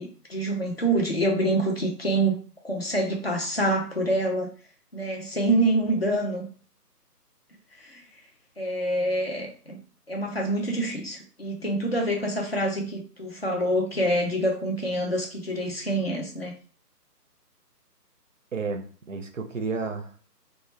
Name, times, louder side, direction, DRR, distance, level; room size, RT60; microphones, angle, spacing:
voice 1, 0.0-2.4 2.6-4.5 4.9-6.4 7.8-8.0 8.6-9.8 10.1-16.5, right 1 dB, 40° left, 0 dB, 0.5 m, -26 dB
voice 2, 18.5-20.3, right 4 dB, 55° right, 6 dB, 0.5 m, -32 dB
2.1 x 2.1 x 3.1 m, 0.40 s
figure-of-eight pair, 150°, 48 cm